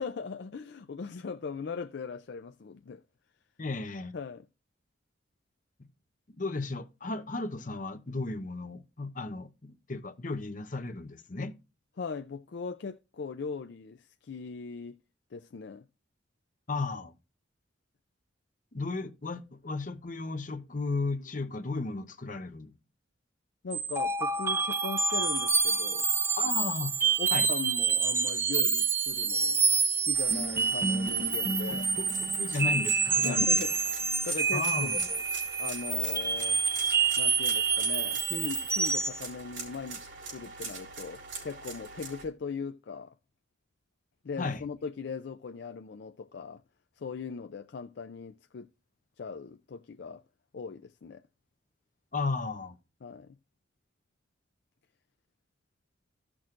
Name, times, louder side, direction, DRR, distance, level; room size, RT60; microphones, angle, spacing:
voice 1, 0.0-3.0 4.1-4.5 12.0-14.9 15.3-15.8 23.6-26.1 27.2-29.6 30.0-31.9 33.2-33.8 34.2-35.2 35.6-36.6 37.2-40.0 40.3-43.1 44.2-46.6 47.0-48.7 49.2-50.2 50.5-51.2 53.0-53.4, left 5 dB, 60° left, 0.4 m, -39 dB
voice 2, 3.6-4.1 6.3-11.6 16.7-17.1 18.7-22.7 26.4-27.0 27.3-27.5 31.7-33.6 34.5-35.1 44.4-44.7 52.1-52.8, left 3 dB, 45° left, 0.8 m, -34 dB
sound 1, 23.7-39.2, right 5 dB, 15° right, 0.4 m, -27 dB
sound 2, 30.1-42.2, right 4 dB, 70° right, 4.0 m, -44 dB
15.0 x 6.1 x 2.5 m
head